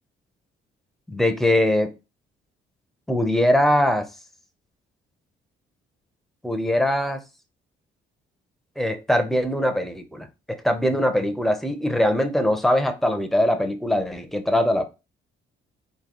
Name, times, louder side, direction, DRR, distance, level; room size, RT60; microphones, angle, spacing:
voice 1, 1.1-1.9 3.1-4.1 6.4-7.2 8.8-14.9, left 1 dB, ahead, 0.7 m, -22 dB
3.9 x 2.7 x 3.0 m
cardioid pair, 90°, 20 cm